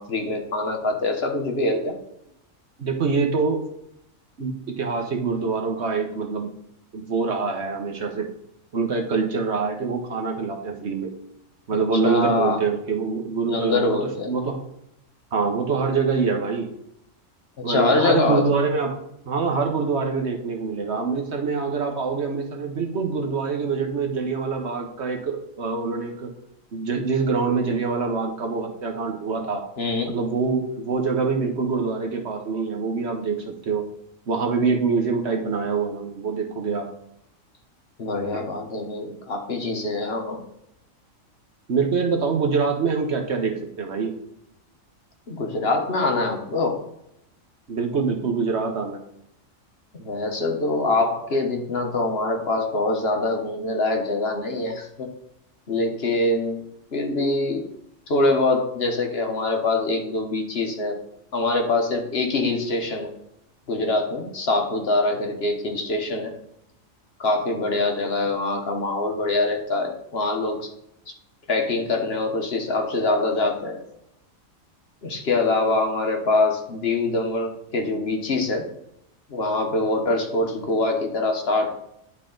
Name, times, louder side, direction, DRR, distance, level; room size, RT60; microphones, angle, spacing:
voice 1, 0.0-2.0 12.0-12.6 13.5-14.3 17.6-18.5 29.8-30.1 38.0-40.4 45.3-46.8 50.0-55.1 55.7-56.6 56.9-57.7 58.1-61.0 61.3-63.1 63.7-66.3 67.2-70.7 71.5-73.8 75.0-78.7 79.3-81.7, left 2 dB, 50° left, 3 dB, 1.2 m, -24 dB
voice 2, 2.8-3.6 4.4-6.5 6.9-8.3 8.7-11.1 11.7-14.0 14.3-14.6 15.3-16.7 17.6-19.0 19.3-26.3 26.7-29.6 30.1-33.8 34.3-36.9 41.7-44.1 47.7-49.0, right 4 dB, 55° right, 3 dB, 1.2 m, -25 dB
10.5 x 4.0 x 3.8 m, 0.78 s
omnidirectional pair, 1.4 m